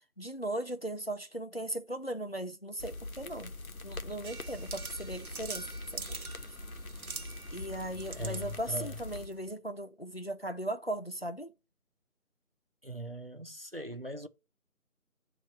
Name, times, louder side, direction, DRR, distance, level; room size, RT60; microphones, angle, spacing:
voice 1, 0.2-3.5 3.8-6.0 7.5-11.5, right 1 dB, 45° left, 0.4 m, -38 dB
sound 1, 2.8-9.3, left 2 dB, 70° left, 1.1 m, -43 dB
sound 2, 4.2-9.5, right 4 dB, 75° right, 0.9 m, -45 dB
voice 2, 8.1-8.9 12.8-14.3, equal, 45° right, 0.5 m, -40 dB
8.8 x 3.0 x 5.9 m
figure-of-eight pair, 165°, 44 cm